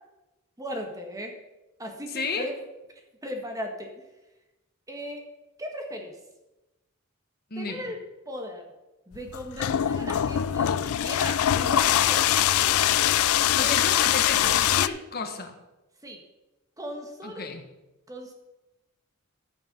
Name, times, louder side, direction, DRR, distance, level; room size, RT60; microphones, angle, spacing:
voice 1, 0.6-1.3 1.8-2.6 3.2-3.9 4.9-5.2 5.6-6.1 7.6-8.0 8.2-8.6 9.1-12.6 13.6-13.8 16.0-16.2 16.8-17.5 18.1-18.3, equal, 15° right, 3 dB, 1.6 m, -37 dB
voice 2, 2.1-2.5 7.5-7.9 13.5-15.6 17.2-17.6, left 4 dB, 45° left, 5 dB, 1.4 m, -32 dB
sound 1, 9.1-14.9, left 11 dB, 80° left, 0.4 m, -23 dB
14.0 x 5.9 x 5.4 m, 1.0 s
head